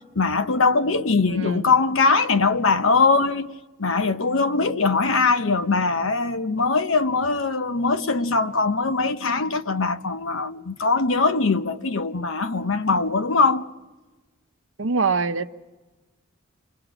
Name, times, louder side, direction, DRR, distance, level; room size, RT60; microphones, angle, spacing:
voice 1, 0.1-3.5 3.8-13.7, left 4 dB, 85° left, 1.0 m, -21 dB
voice 2, 1.3-1.7 14.8-15.5, right 4 dB, 70° right, 0.8 m, -24 dB
28.0 x 22.0 x 5.0 m
head